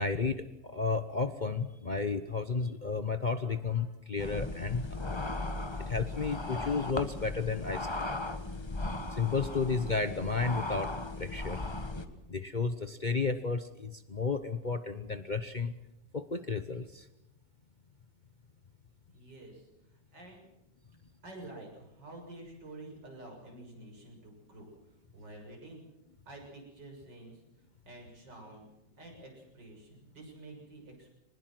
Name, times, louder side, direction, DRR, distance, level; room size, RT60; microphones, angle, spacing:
voice 1, 0.0-5.2 5.9-8.1 9.1-11.6 12.3-15.7 16.1-17.1, left 4 dB, 35° left, 9 dB, 0.9 m, -32 dB
sound 1, 4.2-12.1, left 2 dB, 15° left, 1.3 m, -37 dB
voice 2, 19.1-19.7 20.1-20.5 21.2-24.7 25.1-25.8 26.3-27.4 27.8-28.6 29.0-31.1, right 2 dB, 85° right, 1 dB, 7.6 m, -49 dB
23.5 x 20.0 x 7.7 m, 0.88 s
omnidirectional pair, 1.9 m